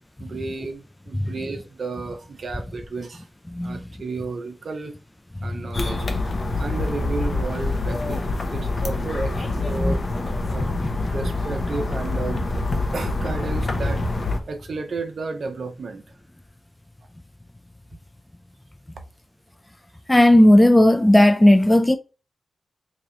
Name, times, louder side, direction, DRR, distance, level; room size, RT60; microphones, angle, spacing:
voice 1, 0.2-3.3 3.6-5.0 5.4-6.1 6.6-10.0 10.5-10.7 11.1-12.5 12.9-14.0 14.5-16.0, right 3 dB, 65° right, 0.8 m, -32 dB
sound 1, 5.7-14.4, left 2 dB, 45° left, 0.8 m, -26 dB
voice 2, 20.1-22.0, left 1 dB, 15° left, 0.4 m, -14 dB
3.0 x 2.8 x 3.8 m
cardioid pair, 80°, 0 cm